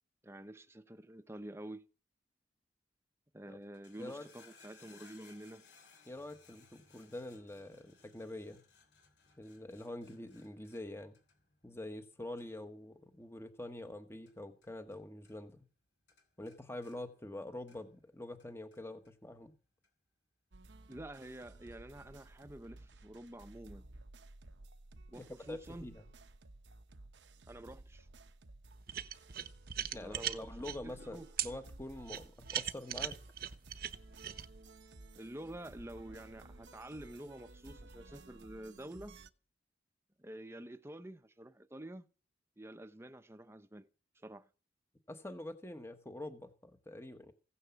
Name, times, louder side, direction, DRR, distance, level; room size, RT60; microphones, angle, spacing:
voice 1, 0.2-1.9 3.3-5.6 20.9-23.9 25.1-25.9 27.5-28.1 29.9-30.5 30.8-31.3 35.2-39.2 40.2-42.1 42.6-43.9 44.2-44.5, right 1 dB, 15° right, 0.8 m, -48 dB
sound 1, 3.6-15.0 15.2-15.8 16.1-18.0 18.4-19.1 19.8-19.9, left 5 dB, 65° left, 3.2 m, -64 dB
voice 2, 6.1-8.6 9.4-11.2 11.6-15.7 16.4-19.5 25.2-26.1 29.9-33.2 45.1-47.3, left 1 dB, 15° left, 1.1 m, -46 dB
sound 2, 20.5-39.3, right 2 dB, 80° right, 0.9 m, -55 dB
sound 3, 28.9-30.8 31.4-31.5 32.1-34.5, right 11 dB, 55° right, 1.0 m, -38 dB
16.0 x 9.8 x 7.0 m
head